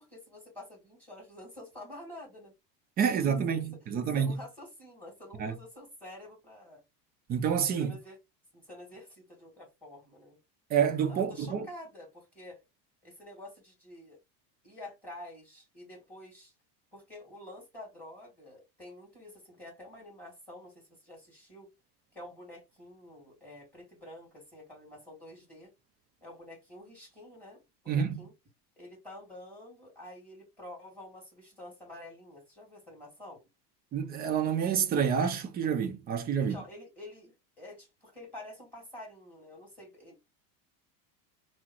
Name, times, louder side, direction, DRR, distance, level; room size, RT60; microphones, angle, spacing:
voice 1, 0.0-2.5 3.0-3.6 4.1-6.8 7.8-8.2 8.5-10.4 11.1-12.6 13.0-14.2 14.6-16.5 16.9-21.7 22.1-25.7 26.2-28.3 28.8-33.4 36.4-40.2, left 1 dB, 5° left, 2.4 m, -48 dB
voice 2, 3.0-4.3 5.4-5.5 7.3-8.0 10.7-11.7 27.9-28.2 33.9-36.6, right 7 dB, 20° right, 0.5 m, -28 dB
3.6 x 2.1 x 4.2 m
supercardioid pair, 145°, 47 cm